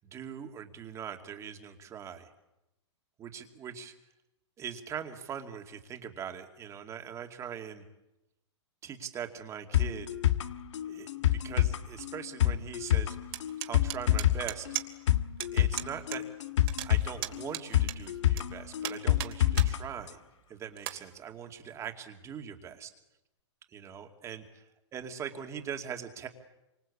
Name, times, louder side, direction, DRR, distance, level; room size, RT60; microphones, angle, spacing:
voice 1, 0.1-2.3 3.2-3.9 4.6-7.8 8.8-10.1 10.9-13.2 13.6-14.7 15.5-16.2 16.8-20.2 20.5-22.9 23.7-24.6 24.9-26.3, right 8 dB, 20° right, 5 dB, 2.5 m, -41 dB
sound 1, 9.7-19.8 20.1-20.2, left 12 dB, 70° left, 1.7 m, -28 dB
sound 2, 13.3-15.1 15.4-15.5 15.8-16.2 16.5-18.4 18.8-19.7 20.1-20.2 20.8-21.0, right 15 dB, 50° right, 2.9 m, -36 dB
27.0 x 25.0 x 8.6 m, 0.93 s
hypercardioid pair, 150°, 16 cm